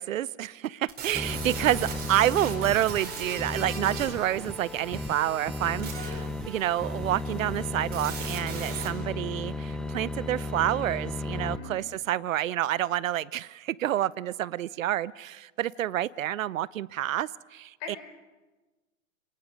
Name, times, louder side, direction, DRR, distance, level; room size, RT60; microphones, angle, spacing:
voice 1, 0.0-18.0, right 12 dB, 75° right, 21 dB, 0.7 m, -28 dB
sound 1, 0.9-8.9, right 5 dB, 25° right, 4.8 m, -40 dB
sound 2, 1.1-11.6, left 2 dB, ahead, 0.9 m, -35 dB
voice 2, 11.5-12.0 17.8-18.0, left 7 dB, 40° left, 3 dB, 6.3 m, -42 dB
29.0 x 19.0 x 6.2 m, 1.2 s
hypercardioid pair, 130°, 40 cm